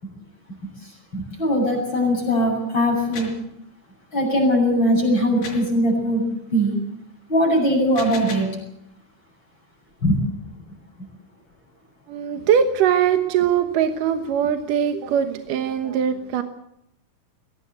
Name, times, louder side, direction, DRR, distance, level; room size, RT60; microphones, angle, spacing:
voice 1, 1.1-3.3 4.1-6.2 6.5-6.7 7.3-8.5 10.0-10.2, equal, 30° left, -2 dB, 7.6 m, -20 dB
sound 1, 2.9-3.4 5.4-5.7 7.7-8.6, left 4 dB, 60° left, 6.1 m, -36 dB
voice 2, 12.1-16.4, right 8 dB, 65° right, 7 dB, 2.6 m, -21 dB
22.0 x 18.0 x 8.2 m, 0.79 s
omnidirectional pair, 4.4 m